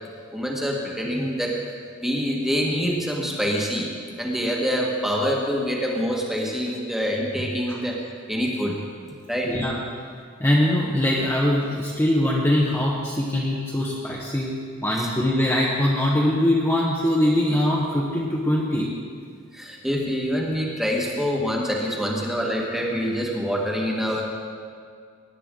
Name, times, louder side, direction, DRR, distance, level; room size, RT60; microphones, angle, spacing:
voice 1, 0.3-1.6 2.0-3.9 4.2-8.0 8.3-8.8 9.3-9.5 15.0-15.1 19.5-24.2, equal, ahead, -2 dB, 1.6 m, -25 dB
voice 2, 9.5-9.8 10.4-14.5 14.8-18.9, left 1 dB, 15° left, -5 dB, 1.1 m, -22 dB
18.5 x 9.0 x 3.8 m, 2.1 s
head